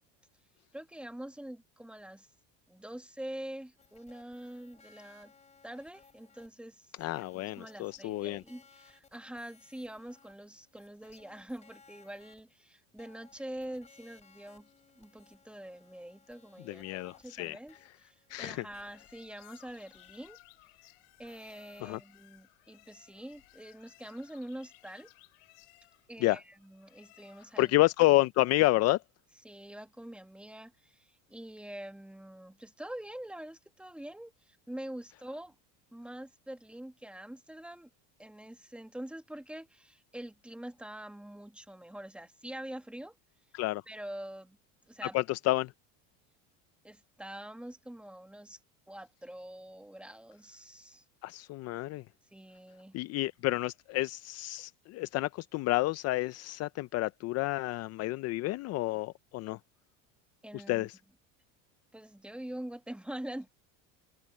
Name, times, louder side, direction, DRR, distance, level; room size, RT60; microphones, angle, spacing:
voice 1, 0.7-2.3 2.7-5.3 5.6-6.9 7.3-14.7 14.9-20.4 21.2-25.1 26.1-27.7 29.4-35.5 35.9-37.9 38.2-43.1 43.9-44.6 44.9-45.2 46.8-48.6 48.9-51.0 52.3-53.0 60.4-60.9 61.9-63.5, right 1 dB, 5° right, 1.7 m, -45 dB
sound 1, 3.8-6.5 7.0-12.4 13.0-19.1 19.7-20.1 21.3-22.2, left 5 dB, 20° left, 3.1 m, -62 dB
voice 2, 7.0-8.4 16.6-17.6 18.3-18.6 21.8-22.0 26.2-26.4 27.6-29.0 43.5-43.8 45.1-45.7 51.2-52.0 52.9-59.6 60.5-60.9, left 18 dB, 45° left, 0.6 m, -29 dB
sound 2, 18.6-27.8, left 30 dB, 75° left, 5.9 m, -60 dB
supercardioid pair, 130°, 35 cm